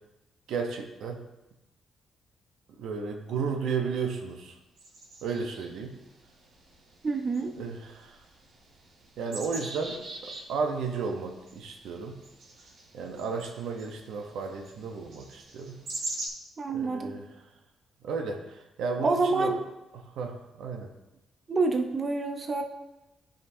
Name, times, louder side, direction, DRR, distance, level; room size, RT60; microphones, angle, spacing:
voice 1, 0.5-1.2 2.8-4.6 5.2-5.9 7.6-8.2 9.2-10.0 10.5-12.1 12.9-15.8 16.7-17.3 18.0-19.5 20.2-20.9, right 5 dB, 85° right, 3 dB, 0.8 m, -33 dB
sound 1, 4.8-16.3, right 2 dB, 70° right, 1.6 m, -44 dB
voice 2, 7.0-7.5 16.6-17.1 19.0-19.6 21.5-22.6, right 3 dB, 40° right, 5 dB, 0.7 m, -27 dB
11.0 x 5.2 x 2.7 m, 0.97 s
cardioid pair, 90°, 0 cm